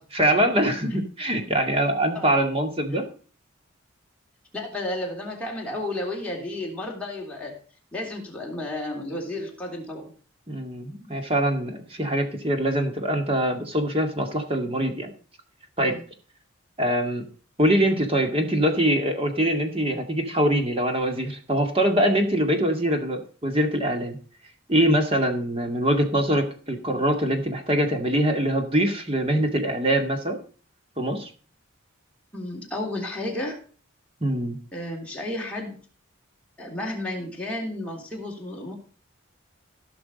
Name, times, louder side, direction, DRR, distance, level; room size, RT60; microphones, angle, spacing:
voice 1, 0.1-3.0 10.5-15.1 15.8-16.0 16.8-17.3 17.6-24.2 24.7-30.4 31.0-31.3 34.2-34.6, right 1 dB, 25° right, 5 dB, 2.0 m, -23 dB
voice 2, 4.5-7.6 7.9-10.1 15.8-16.0 32.3-33.6 34.7-35.8 36.6-38.7, left 1 dB, 5° left, -2 dB, 3.2 m, -32 dB
16.0 x 6.1 x 5.3 m, 0.41 s
head